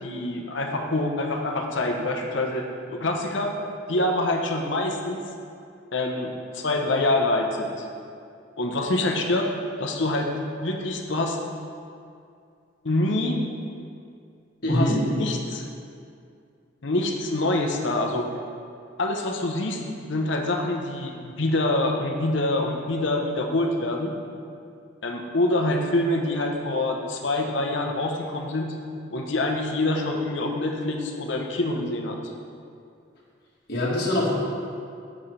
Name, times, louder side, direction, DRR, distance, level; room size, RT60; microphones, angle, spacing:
voice 1, 0.0-3.5 3.9-5.2 5.9-7.7 8.6-9.5 9.8-10.3 10.6-11.4 12.8-13.4 14.7-15.6 16.8-18.3 19.0-24.1 25.0-28.7 29.1-32.2, left 2 dB, 70° left, 2 dB, 0.9 m, -26 dB
voice 2, 14.6-15.0 33.7-34.3, left 1 dB, 55° left, -6 dB, 1.6 m, -23 dB
8.2 x 7.3 x 3.3 m, 2.4 s
head